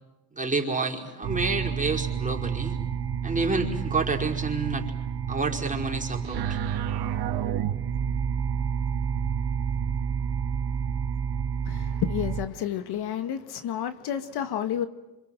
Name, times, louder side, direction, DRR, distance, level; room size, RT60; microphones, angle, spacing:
voice 1, 0.3-2.8 3.2-4.9 5.3-6.6, right 3 dB, 20° right, 5.0 m, -29 dB
sound 1, 1.2-12.4, right 7 dB, 70° right, 2.0 m, -29 dB
voice 2, 11.6-14.9, left 10 dB, 70° left, 1.8 m, -30 dB
27.0 x 26.5 x 7.8 m
cardioid pair, 85°, 40 cm